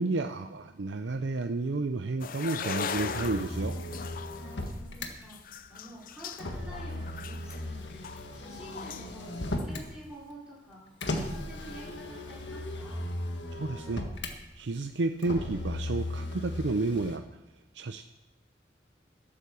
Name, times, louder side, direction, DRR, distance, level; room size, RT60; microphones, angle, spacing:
voice 1, 0.0-3.7 13.5-14.0 14.5-17.2 17.7-18.0, right 3 dB, 85° right, 7 dB, 0.6 m, -31 dB
sound 1, 2.2-9.2 9.6-9.8, left 6 dB, 50° left, 0.6 m, -39 dB
Motor vehicle (road), 2.9-5.1 6.3-9.9 11.0-14.4 15.2-17.2, left 1 dB, 90° left, 1.6 m, -37 dB
voice 2, 4.2-13.0, right 1 dB, 5° right, -7 dB, 4.9 m, -49 dB
12.0 x 8.7 x 7.0 m, 1.0 s
head